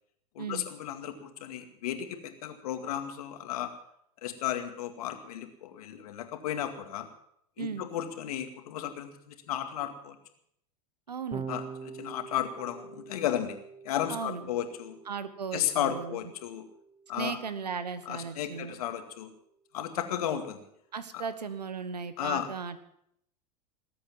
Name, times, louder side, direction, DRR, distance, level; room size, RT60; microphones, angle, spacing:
voice 1, 0.3-3.7 4.2-7.1 7.6-10.2 11.5-13.6 13.8-15.0 15.5-16.7 17.1-17.4 18.1-19.3 19.7-20.6 21.1-21.3 22.2-22.5, left 10 dB, 70° left, 7 dB, 2.2 m, -34 dB
voice 2, 11.1-11.4 14.1-14.4 15.1-16.2 17.1-18.7 20.9-22.8, right 5 dB, 90° right, 13 dB, 1.3 m, -36 dB
Electric guitar / Bass guitar, 11.3-17.7, right 6 dB, 30° right, 2.1 m, -45 dB
19.5 x 8.6 x 7.5 m, 0.72 s
hypercardioid pair, 90°, 20 cm